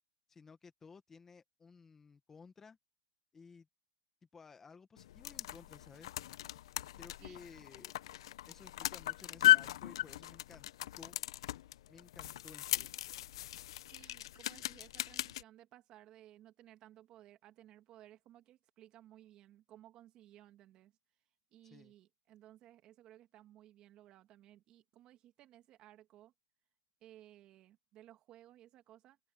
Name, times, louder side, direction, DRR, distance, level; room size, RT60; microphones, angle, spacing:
voice 1, 0.3-2.8 3.3-3.7 4.3-6.1 7.0-7.9 8.5-10.7 11.0-11.2 11.9-12.9 21.6-21.9, left 5 dB, 10° left, 1.6 m, -56 dB
sound 1, 5.0-15.4, left 14 dB, 65° left, 0.7 m, -36 dB
voice 2, 13.9-20.9 21.5-26.3 27.0-29.2, right 13 dB, 30° right, 2.4 m, -59 dB
open air
supercardioid pair, 155°, 3 cm